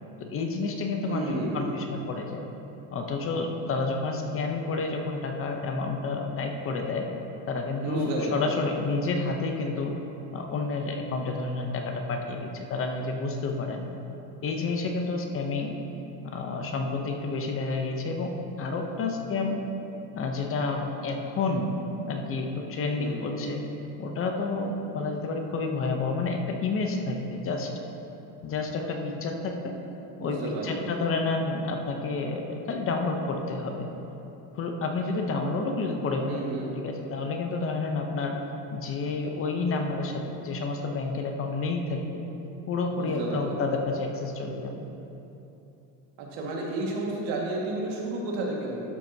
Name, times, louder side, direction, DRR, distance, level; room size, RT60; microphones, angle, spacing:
voice 1, 0.3-2.4 2.9-7.0 7.5-9.9 10.3-13.9 14.4-15.8 16.3-18.3 18.6-19.6 20.1-21.8 22.1-23.6 24.0-27.7 28.4-29.7 30.2-33.9 34.5-36.4 36.8-38.4 38.7-42.0 42.7-44.9, left 3 dB, 30° left, 3 dB, 0.7 m, -30 dB
voice 2, 1.1-1.8 7.8-8.4 22.9-23.3 30.2-30.9 36.3-36.7 43.0-43.6 46.2-48.8, right 2 dB, 80° right, -2 dB, 1.8 m, -32 dB
12.5 x 7.5 x 2.7 m, 2.9 s
cardioid pair, 160°, 45 cm